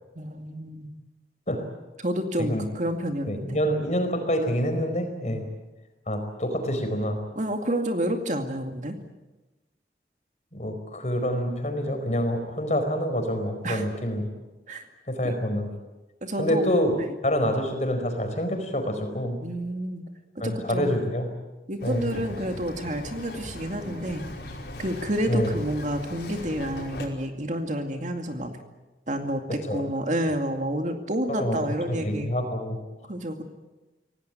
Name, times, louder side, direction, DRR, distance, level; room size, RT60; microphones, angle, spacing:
voice 1, 0.2-0.9 2.0-3.6 5.2-5.4 7.4-9.0 13.6-13.9 14.7-14.9 15.2-15.4 16.2-16.7 17.0-17.1 19.4-20.1 20.4-21.0 21.7-24.3 24.8-28.5 29.1-32.3 33.1-33.4, right 1 dB, 45° right, 5 dB, 2.3 m, -29 dB
voice 2, 3.3-5.4 6.1-7.2 10.5-14.3 15.1-15.7 16.4-16.9 17.2-19.4 20.4-21.3 21.8-22.1 25.3-25.5 29.7-29.8 31.4-31.6 31.9-32.8, equal, 40° left, 5 dB, 4.7 m, -27 dB
Bird vocalization bird call bird song, 21.8-27.1, left 1 dB, 75° left, 5.2 m, -39 dB
26.0 x 18.0 x 9.2 m, 1.1 s
head